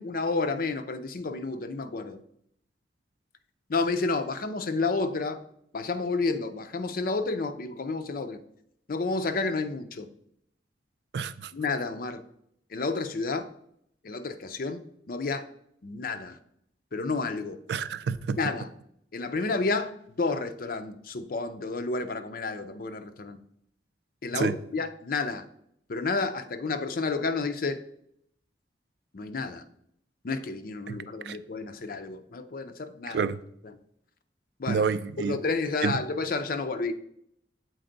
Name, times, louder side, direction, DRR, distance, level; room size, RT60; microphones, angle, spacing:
voice 1, 0.0-2.2 3.7-5.4 5.7-8.4 8.9-10.1 11.5-12.2 12.7-13.5 14.0-15.5 15.8-16.4 16.9-17.6 18.4-18.7 19.1-19.9 20.2-23.4 24.2-25.4 25.9-27.8 29.1-29.6 30.2-33.2 34.6-34.9 35.2-36.9, left 3 dB, 55° left, 0.5 m, -30 dB
voice 2, 11.1-11.5 17.7-18.4 24.3-24.6 30.9-31.0 31.2-31.4 33.1-33.4 34.7-35.4 35.8-36.0, right 5 dB, 65° right, 0.3 m, -28 dB
7.8 x 4.3 x 3.9 m
head